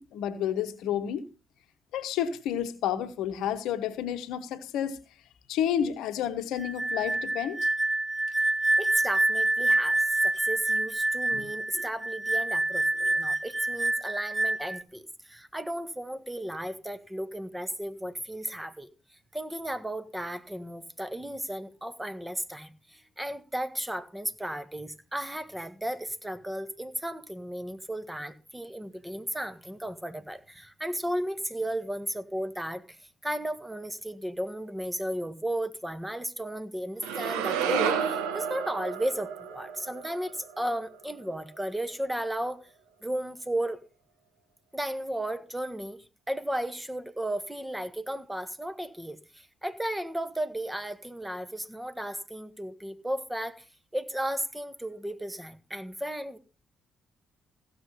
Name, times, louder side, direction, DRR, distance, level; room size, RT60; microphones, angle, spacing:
voice 1, 0.1-1.2 1.9-5.0 5.5-7.7 11.3-11.4, left 9 dB, 70° left, 1.0 m, -30 dB
sound 1, 6.6-14.8, right 2 dB, 25° right, 1.1 m, -27 dB
voice 2, 8.8-18.9 19.3-32.8 33.2-42.6 43.0-43.8 44.7-46.0 46.3-53.6 53.9-56.4, right 1 dB, 10° right, 1.7 m, -34 dB
sound 2, 37.0-41.2, right 7 dB, 80° right, 1.3 m, -31 dB
16.0 x 6.8 x 5.6 m
hypercardioid pair, 45°, 0 cm